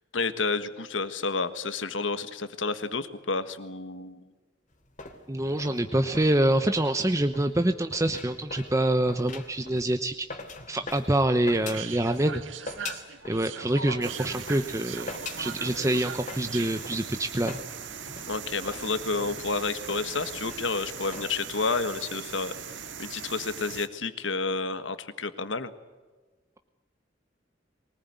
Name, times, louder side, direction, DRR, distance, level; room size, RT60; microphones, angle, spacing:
voice 1, 0.1-4.2 18.3-22.5 23.0-25.7, left 4 dB, 80° left, 11 dB, 1.6 m, -30 dB
sound 1, 4.7-12.3 12.7-13.5 13.8-21.3, left 3 dB, 40° left, 3.2 m, -43 dB
voice 2, 5.3-10.3 10.7-12.4 13.2-17.6, right 1 dB, 15° right, 8 dB, 0.9 m, -26 dB
sound 2, 11.5-16.7, right 6 dB, 85° right, 1.8 m, -40 dB
sound 3, 14.0-23.9, right 7 dB, 70° right, 1.8 m, -40 dB
23.5 x 19.5 x 9.5 m, 1.3 s
head